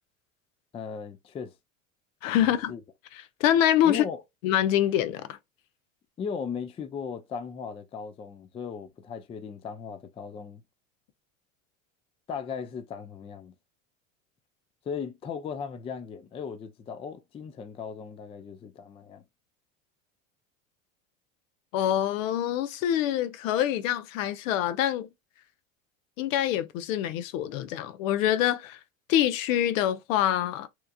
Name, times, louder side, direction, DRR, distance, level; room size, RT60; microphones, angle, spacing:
voice 1, 0.7-1.5 2.4-2.8 3.8-4.2 6.2-10.6 12.3-13.5 14.9-19.2, left 6 dB, 15° left, 0.3 m, -37 dB
voice 2, 2.2-2.7 3.4-4.0 4.4-5.4 21.7-25.1 26.2-28.8 29.1-30.7, left 11 dB, 75° left, 0.6 m, -25 dB
2.9 x 2.3 x 2.2 m
hypercardioid pair, 85°, 40 cm